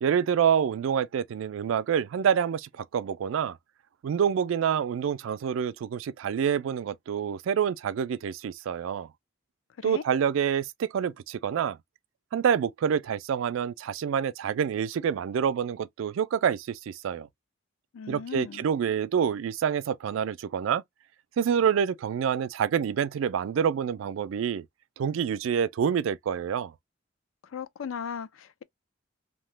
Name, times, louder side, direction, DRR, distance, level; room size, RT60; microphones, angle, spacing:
voice 1, 0.0-3.6 4.0-9.1 9.8-11.8 12.3-17.3 18.1-20.8 21.4-24.7 25.0-26.7, right 8 dB, 75° right, 0.3 m, -27 dB
voice 2, 17.9-18.7 27.5-28.6, left 7 dB, 85° left, 0.4 m, -37 dB
2.9 x 2.1 x 3.1 m
head